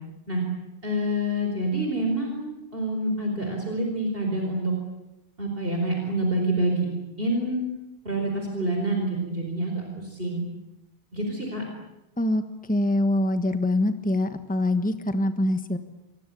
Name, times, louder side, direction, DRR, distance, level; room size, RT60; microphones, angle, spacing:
voice 1, 0.8-4.7 5.4-6.9 7.2-7.7 8.0-10.4 11.1-11.6, right 1 dB, 60° right, 1 dB, 4.9 m, -27 dB
voice 2, 12.7-15.8, left 1 dB, 10° left, 9 dB, 1.3 m, -24 dB
27.5 x 22.5 x 8.5 m, 0.91 s
omnidirectional pair, 1.1 m